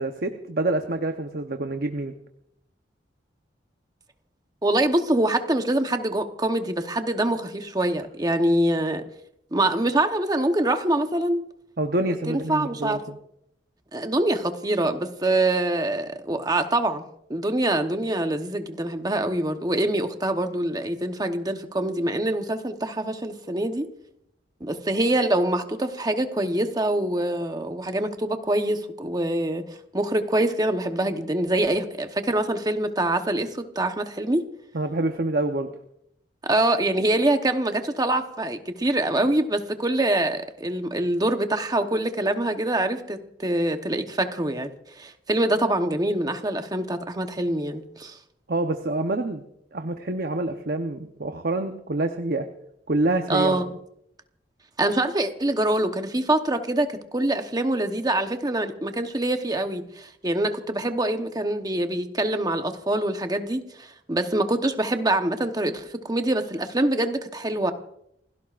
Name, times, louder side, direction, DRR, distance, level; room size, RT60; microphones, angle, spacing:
voice 1, 0.0-2.1 11.8-13.2 34.7-35.7 48.5-49.4 49.7-52.5 52.9-53.6, right 2 dB, 55° right, 6 dB, 0.9 m, -26 dB
voice 2, 4.6-9.0 9.5-11.4 12.3-13.0 13.9-17.0 17.3-23.9 24.6-29.6 29.9-34.4 36.4-48.2 53.3-53.7 54.8-67.7, right 1 dB, 20° right, 7 dB, 1.0 m, -25 dB
28.5 x 16.5 x 2.5 m, 0.76 s
head